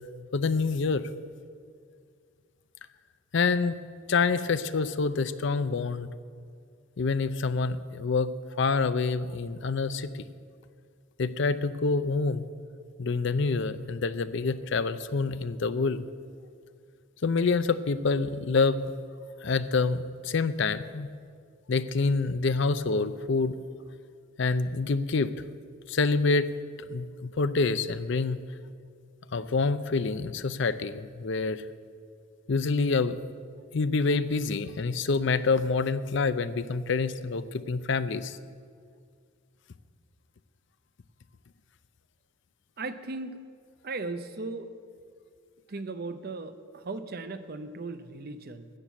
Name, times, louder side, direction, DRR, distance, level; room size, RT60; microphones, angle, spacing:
voice 1, 0.3-1.1 3.3-3.8 4.1-6.1 7.0-10.2 11.2-12.5 13.0-16.0 17.2-18.9 19.4-21.1 21.7-23.6 24.4-25.3 25.9-26.5 26.9-28.4 29.3-31.6 32.5-33.2 33.7-38.4, left 4 dB, 60° left, 13 dB, 0.5 m, -27 dB
voice 2, 42.8-43.4 43.8-44.7 45.7-48.7, right 3 dB, 45° right, 11 dB, 0.6 m, -37 dB
13.0 x 7.5 x 8.3 m, 2.1 s
head